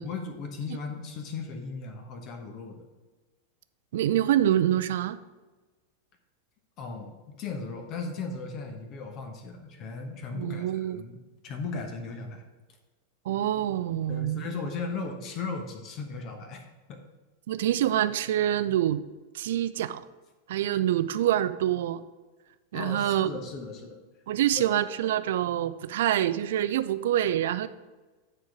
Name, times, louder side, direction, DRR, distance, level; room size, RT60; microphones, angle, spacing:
voice 1, 0.0-2.8 6.8-11.2 11.4-12.4 14.1-17.0 22.7-24.0 24.5-24.6, left 4 dB, 35° left, 4 dB, 1.1 m, -37 dB
voice 2, 3.9-5.2 10.3-11.0 13.3-14.5 17.5-19.0 19.3-20.0 20.5-22.0 22.7-23.3 24.3-27.7, right 11 dB, 55° right, 14 dB, 0.4 m, -26 dB
9.8 x 4.5 x 5.0 m, 1.2 s
figure-of-eight pair, 90°, 0 cm